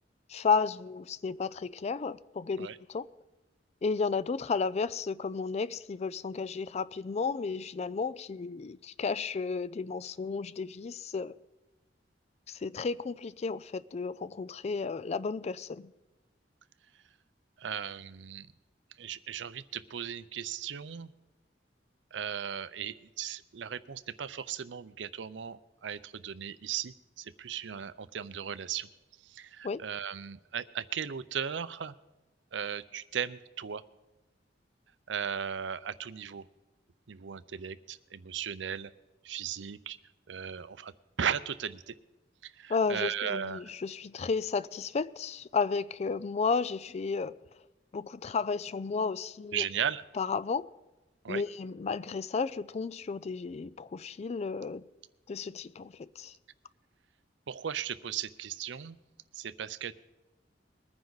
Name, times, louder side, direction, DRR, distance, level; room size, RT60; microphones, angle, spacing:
voice 1, 0.3-3.1 3.8-11.3 12.5-15.9 29.6-29.8 42.7-47.3 47.9-49.6 50.2-50.7 51.3-54.8 55.3-56.3, left 5 dB, 35° left, 0.4 m, -33 dB
voice 2, 17.6-18.5 19.0-21.1 22.1-28.9 29.2-32.0 32.5-33.8 35.1-36.5 37.1-38.9 39.2-40.0 40.3-40.9 41.2-41.9 42.4-43.6 49.5-50.0 51.2-51.4 57.5-59.0 59.3-59.9, right 8 dB, 80° right, 0.5 m, -36 dB
22.0 x 9.6 x 4.0 m
head